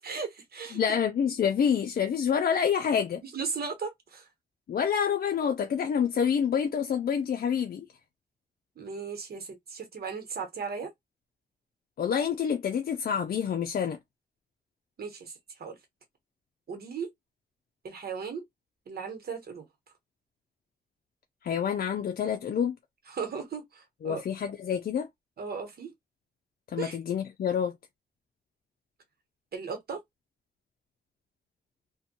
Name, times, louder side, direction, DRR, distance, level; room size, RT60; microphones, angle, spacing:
voice 1, 0.0-0.8 3.2-4.3 8.8-10.9 15.0-15.8 16.7-17.1 17.8-18.4 18.9-19.6 23.1-24.2 25.4-25.9 26.8-27.0 29.5-30.0, right 5 dB, 85° right, 0.9 m, -36 dB
voice 2, 0.7-3.2 4.7-7.9 12.0-14.0 21.4-22.8 24.0-25.1 26.7-27.8, left 7 dB, 70° left, 0.4 m, -27 dB
2.6 x 2.2 x 2.7 m
wide cardioid pair, 90°, 16 cm